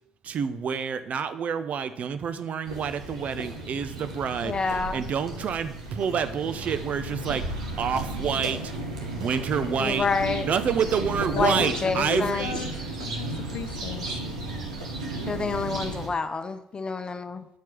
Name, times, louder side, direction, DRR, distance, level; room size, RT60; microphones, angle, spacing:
voice 1, 0.2-8.7 9.1-10.1 10.4-12.6 12.9-13.1, right 7 dB, 50° right, 11 dB, 0.6 m, -28 dB
sound 1, 2.6-16.1, right 2 dB, 80° right, 1.1 m, -34 dB
voice 2, 4.4-5.0 9.8-10.4 11.3-12.4 15.3-17.5, left 4 dB, 30° left, 9 dB, 0.8 m, -28 dB
voice 3, 11.4-11.7 12.0-12.7 13.0-14.2, left 10 dB, 65° left, 9 dB, 0.5 m, -36 dB
7.3 x 4.5 x 5.9 m, 0.75 s
figure-of-eight pair, 45°, 3 cm